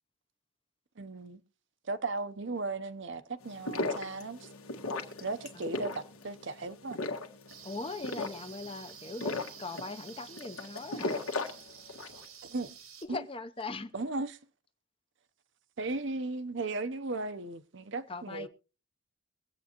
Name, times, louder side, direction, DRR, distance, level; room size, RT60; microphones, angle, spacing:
voice 1, 1.0-1.4 1.8-4.5 5.2-7.0 12.4-12.7 13.1-13.2 13.9-14.4 15.8-18.5, right 3 dB, 55° right, 0.7 m, -36 dB
sound 1, 3.4-12.2, left 2 dB, 85° left, 1.7 m, -37 dB
sound 2, 7.5-13.1, right 8 dB, 85° right, 2.1 m, -51 dB
voice 2, 7.6-11.2 13.0-13.9 18.1-18.5, left 3 dB, 25° left, 0.6 m, -40 dB
23.0 x 8.3 x 2.9 m
head